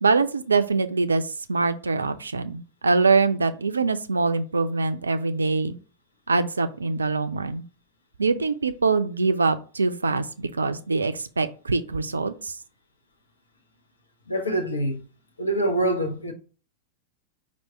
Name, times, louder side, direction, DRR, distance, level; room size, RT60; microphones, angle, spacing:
voice 1, 0.0-5.7 6.3-7.6 8.2-12.5, right 4 dB, 75° right, 0.3 m, -24 dB
voice 2, 14.3-15.1 15.4-16.3, right 1 dB, 80° left, 0.8 m, -25 dB
4.6 x 2.4 x 4.5 m
figure-of-eight pair, 90°, 0 cm